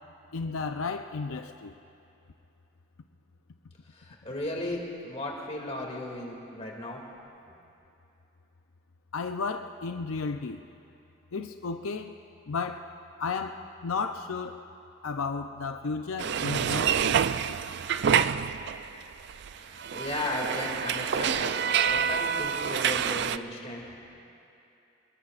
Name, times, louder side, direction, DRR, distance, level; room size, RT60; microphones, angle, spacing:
voice 1, 0.3-1.7 9.1-10.6 11.3-12.1 12.5-12.9 13.2-14.6 15.0-17.6, left 4 dB, 80° left, 6 dB, 0.5 m, -33 dB
voice 2, 3.9-7.0 19.6-21.5 21.8-23.9, left 1 dB, 30° left, -1 dB, 2.4 m, -35 dB
sound 1, 16.2-19.0 19.3-23.4, right 8 dB, 50° right, 0.3 m, -27 dB
27.0 x 21.5 x 2.5 m, 2.8 s
head